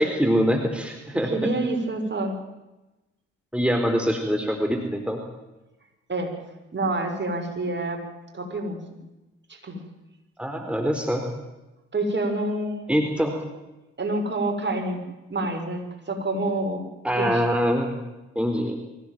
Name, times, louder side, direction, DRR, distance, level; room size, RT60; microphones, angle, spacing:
voice 1, 0.0-1.5 3.5-5.2 10.4-11.2 12.9-13.4 17.0-18.0 18.4-18.8, equal, 5° right, 4 dB, 3.9 m, -24 dB
voice 2, 1.1-2.4 6.1-6.3 6.7-8.0 8.3-9.0 9.5-9.8 11.9-12.8 14.0-16.8 17.2-17.4, right 2 dB, 30° right, 3 dB, 6.2 m, -28 dB
24.0 x 16.0 x 9.4 m, 1.0 s
hypercardioid pair, 45°, 35 cm